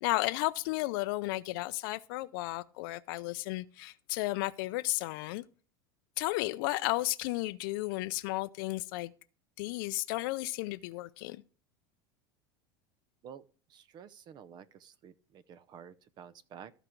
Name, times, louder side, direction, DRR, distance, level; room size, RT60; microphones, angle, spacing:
voice 1, 0.0-5.4 6.2-9.1 9.6-11.4, left 20 dB, 65° left, 0.4 m, -33 dB
voice 2, 13.7-16.7, right 8 dB, 35° right, 0.7 m, -51 dB
14.5 x 5.0 x 4.5 m
supercardioid pair, 135°, 12 cm